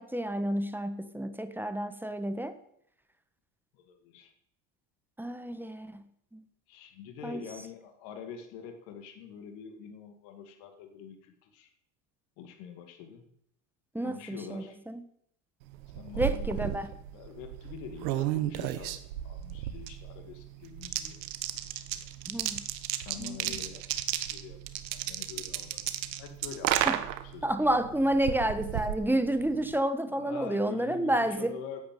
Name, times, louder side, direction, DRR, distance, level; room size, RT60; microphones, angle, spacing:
voice 1, 0.0-2.6 5.2-6.0 6.3-6.4 7.2-7.4 13.9-15.0 16.2-16.9 22.3-22.6 23.2-23.6 26.9-27.0 27.4-31.5, right 1 dB, 5° right, 10 dB, 1.3 m, -30 dB
voice 2, 3.7-4.3 6.7-11.7 12.4-13.3 14.0-14.8 15.9-21.2 21.7-22.1 23.0-23.8 24.1-25.8 26.2-26.8 27.2-27.6 28.7-28.8 30.1-31.8, left 7 dB, 70° left, 6 dB, 2.2 m, -45 dB
sound 1, 15.7-29.8, right 12 dB, 85° right, 1.2 m, -34 dB
9.8 x 8.6 x 9.3 m, 0.71 s
hypercardioid pair, 85°, 49 cm